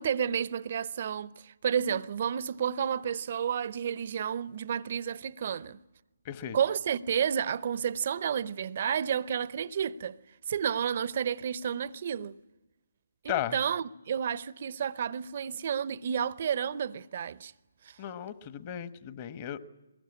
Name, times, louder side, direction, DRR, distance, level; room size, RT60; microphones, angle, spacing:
voice 1, 0.0-5.8 6.5-10.2 10.5-12.3 13.2-17.5 17.8-18.0, right 8 dB, 45° right, 0.8 m, -31 dB
voice 2, 6.2-6.6 13.3-13.6 18.0-19.6, left 11 dB, 30° left, 1.4 m, -35 dB
22.5 x 21.0 x 9.7 m
figure-of-eight pair, 140°, 0 cm